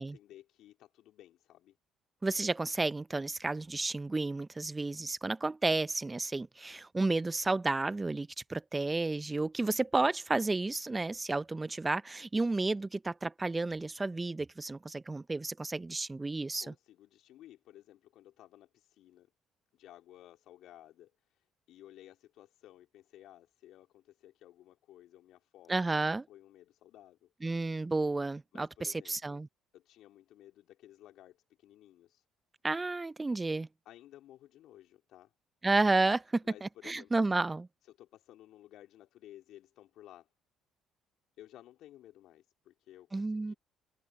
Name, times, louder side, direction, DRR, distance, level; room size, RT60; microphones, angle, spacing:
voice 1, 0.0-1.8 16.6-19.3 19.7-25.9 26.3-27.3 28.5-29.4 29.7-32.2 33.8-35.3 36.4-37.2 37.8-40.3 41.4-43.6, left 13 dB, 65° left, 3.4 m, -56 dB
voice 2, 2.2-16.7 25.7-26.3 27.4-29.5 32.6-33.7 35.6-37.7 43.1-43.5, right 3 dB, 20° right, 1.1 m, -31 dB
hypercardioid pair, 55°, 0 cm